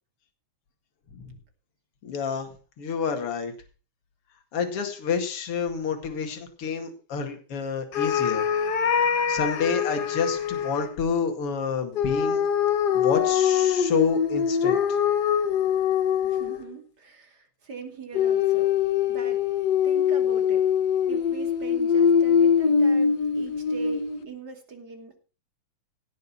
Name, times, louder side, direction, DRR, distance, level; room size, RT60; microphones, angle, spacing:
voice 1, 2.0-2.5 2.8-3.5 4.5-8.5 9.3-12.4 12.9-14.8, left 6 dB, 50° left, 5 dB, 2.9 m, -28 dB
sound 1, 7.9-10.9 11.9-16.7 18.1-24.2, left 7 dB, 80° left, 0.9 m, -23 dB
voice 2, 16.2-18.7 19.1-19.4 19.8-20.7 21.1-25.2, right 4 dB, 35° right, 4 dB, 2.9 m, -41 dB
17.5 x 6.5 x 5.9 m, 0.35 s
omnidirectional pair, 3.5 m